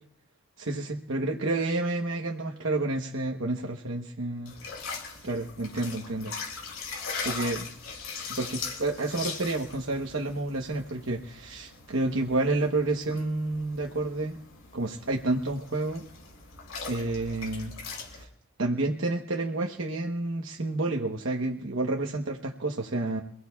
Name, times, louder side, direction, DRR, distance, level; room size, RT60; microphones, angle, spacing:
voice 1, 0.6-4.6 5.2-6.3 7.2-7.7 8.3-14.4 14.7-16.0 16.9-17.7 18.1-18.3 18.6-23.2, right 2 dB, 65° right, 1 dB, 1.1 m, -30 dB
sound 1, 4.5-18.2, left 5 dB, 85° left, 6.1 m, -40 dB
27.0 x 17.0 x 2.4 m, 0.68 s
head